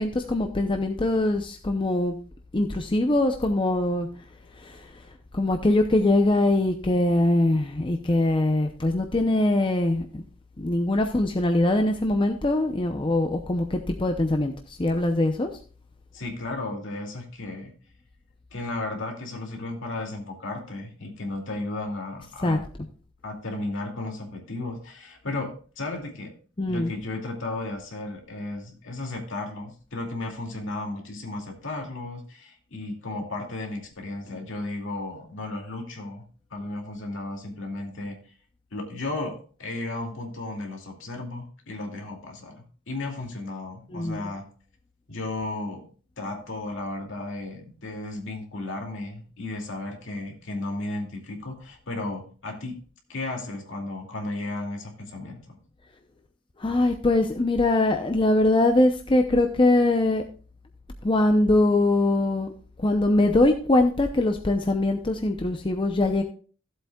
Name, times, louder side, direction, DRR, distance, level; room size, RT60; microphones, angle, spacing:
voice 1, 0.0-2.2 2.5-4.1 4.6-5.0 5.3-10.2 10.6-15.5 22.4-22.6 26.6-26.9 43.9-44.3 56.6-60.2 61.0-62.5 62.8-66.2, left 2 dB, 25° left, 5 dB, 0.6 m, -22 dB
voice 2, 16.1-17.7 18.5-22.6 23.2-26.3 26.7-36.2 36.5-38.3 38.7-44.4 45.1-45.9 46.2-52.8 53.1-55.6, left 2 dB, 65° left, 1 dB, 2.5 m, -34 dB
16.0 x 7.9 x 2.3 m, 0.40 s
head